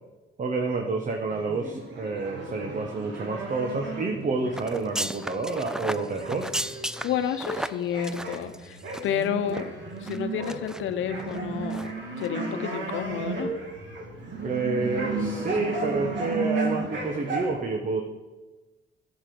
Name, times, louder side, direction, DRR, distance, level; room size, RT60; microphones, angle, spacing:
voice 1, 0.4-6.5 14.4-18.0, right 3 dB, 40° right, 3 dB, 1.3 m, -29 dB
sound 1, 1.3-7.6 7.9-17.5, right 3 dB, 65° right, 2.7 m, -34 dB
sound 2, 4.5-9.2 9.5-9.6 10.1-10.8 11.2-11.4 11.7-11.9 12.2-12.3, right 1 dB, 5° right, 0.5 m, -34 dB
voice 2, 7.0-9.7 10.0-11.9 12.2-13.5, left 8 dB, 80° left, 9 dB, 0.9 m, -30 dB
11.0 x 7.5 x 6.9 m, 1.2 s
cardioid pair, 90°, 20 cm